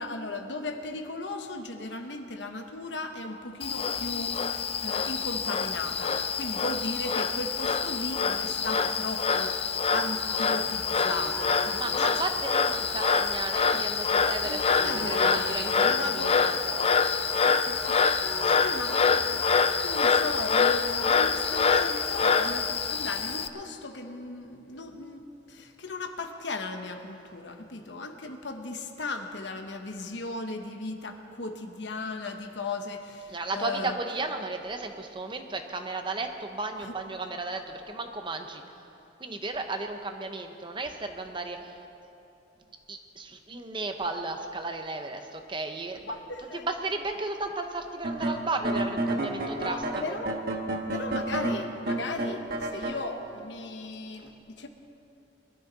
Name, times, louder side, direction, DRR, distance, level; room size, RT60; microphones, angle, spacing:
voice 1, 0.0-9.6 9.9-12.1 14.4-16.3 17.5-34.0 36.8-37.0 46.1-46.7 49.6-50.4 50.9-54.7, left 2 dB, 65° left, 6 dB, 1.1 m, -37 dB
Frog, 3.6-23.5, left 5 dB, 30° left, 0.4 m, -26 dB
sound 1, 9.7-20.9, equal, 10° left, 3.0 m, -45 dB
voice 2, 11.7-16.9 33.3-38.6 39.2-41.8 42.9-46.2 46.5-49.8 50.1-50.2, right 3 dB, 25° right, 5 dB, 0.8 m, -34 dB
sound 2, 48.0-53.0, right 2 dB, 55° right, 1.2 m, -30 dB
21.5 x 12.5 x 4.0 m, 2.8 s
head